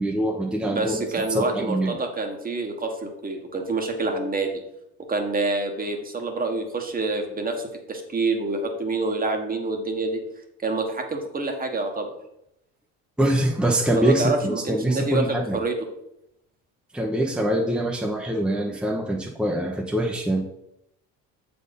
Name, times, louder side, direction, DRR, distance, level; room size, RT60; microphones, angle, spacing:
voice 1, 0.0-1.0 1.3-1.9 13.2-15.6 16.9-20.4, right 1 dB, 5° right, -2 dB, 0.9 m, -24 dB
voice 2, 0.6-4.6 5.1-10.2 10.6-12.1 14.0-15.8, right 3 dB, 25° right, 4 dB, 1.4 m, -27 dB
7.2 x 4.4 x 5.3 m, 0.81 s
supercardioid pair, 95°, 32 cm